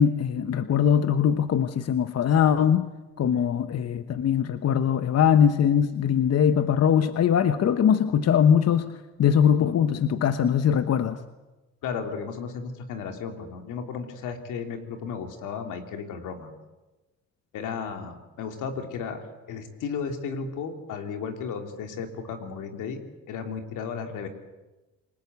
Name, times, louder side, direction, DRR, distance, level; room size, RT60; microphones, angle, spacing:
voice 1, 0.0-2.9 3.2-11.2, left 8 dB, 55° left, 10 dB, 1.1 m, -21 dB
voice 2, 11.8-16.5 17.5-23.0 23.3-24.3, left 6 dB, 85° left, 5 dB, 3.2 m, -34 dB
27.5 x 19.5 x 8.2 m, 1.1 s
cardioid pair, 90°, 30 cm